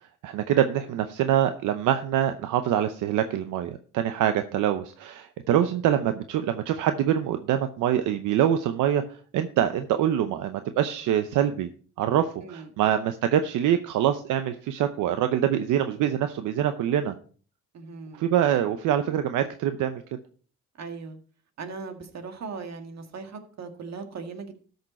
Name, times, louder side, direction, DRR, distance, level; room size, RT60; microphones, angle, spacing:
voice 1, 0.2-9.0 9.3-11.7 12.0-17.1 18.1-20.0, right 10 dB, 85° right, 9 dB, 0.7 m, -25 dB
voice 2, 17.7-18.2 20.7-21.2 21.6-24.6, right 4 dB, 60° right, 6 dB, 1.9 m, -38 dB
13.0 x 6.6 x 4.3 m, 0.42 s
cardioid pair, 90°, 30 cm